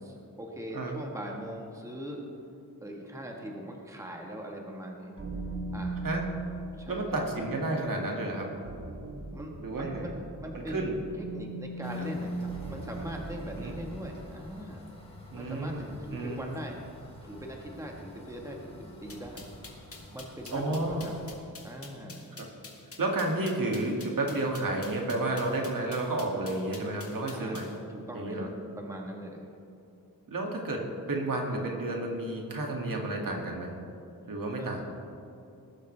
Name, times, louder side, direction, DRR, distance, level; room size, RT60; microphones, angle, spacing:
voice 1, 0.0-2.2 2.8-5.1 5.7-5.9 6.8-7.1 9.3-10.1 10.4-14.8 15.4-16.8 17.2-19.4 20.1-21.2 21.6-22.3 27.3-29.5 34.6-34.7, equal, 10° right, 0 dB, 1.4 m, -41 dB
sound 1, 5.2-14.3, right 2 dB, 35° right, 1.3 m, -39 dB
voice 2, 6.9-8.5 9.6-10.1 10.7-11.0 13.6-13.7 15.3-16.4 20.5-21.0 22.4-22.5 23.0-27.7 28.1-28.5 30.3-33.7 34.3-34.8, right 2 dB, 65° right, 0 dB, 2.1 m, -31 dB
sound 2, 11.8-21.3, left 1 dB, 15° left, 2.5 m, -50 dB
sound 3, 19.1-27.7, left 3 dB, 40° left, 2.0 m, -47 dB
20.0 x 12.0 x 3.3 m, 2.7 s
wide cardioid pair, 150°, 36 cm